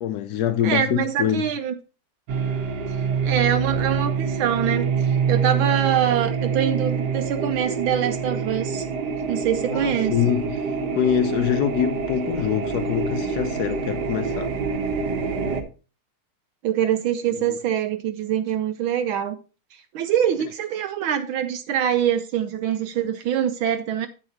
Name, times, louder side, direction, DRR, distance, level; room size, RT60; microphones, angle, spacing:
voice 1, 0.0-1.5 9.7-10.6 10.9-14.5 17.3-17.6, left 10 dB, 85° left, 0.8 m, -24 dB
voice 2, 0.6-1.7 2.9-3.0 3.2-8.9 9.3-10.2 16.6-19.4 19.7-24.1, right 9 dB, 75° right, 1.4 m, -24 dB
sound 1, 2.3-15.6, right 6 dB, 55° right, 1.5 m, -26 dB
9.7 x 8.3 x 2.8 m
omnidirectional pair, 2.4 m